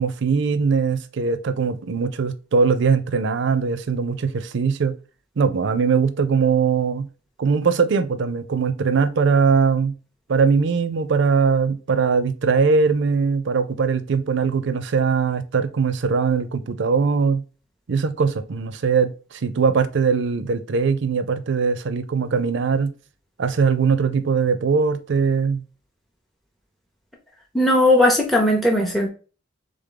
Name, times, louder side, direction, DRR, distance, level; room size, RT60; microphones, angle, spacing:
voice 1, 0.0-5.0 5.4-7.1 7.4-9.9 10.3-17.4 17.9-22.9 23.4-25.6, right 5 dB, 65° right, 0.5 m, -21 dB
voice 2, 27.5-29.1, left 1 dB, ahead, 0.6 m, -17 dB
3.5 x 3.5 x 3.8 m
head